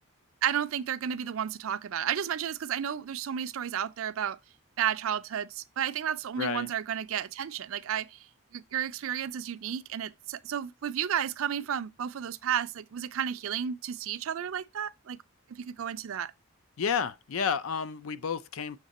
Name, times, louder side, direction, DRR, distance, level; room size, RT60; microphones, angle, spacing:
voice 1, 0.4-4.4 4.8-8.3 8.5-15.2 15.6-16.3, right 9 dB, 65° right, 0.4 m, -32 dB
voice 2, 6.4-6.7 16.8-18.8, left 6 dB, 65° left, 0.4 m, -31 dB
6.6 x 3.6 x 4.0 m
head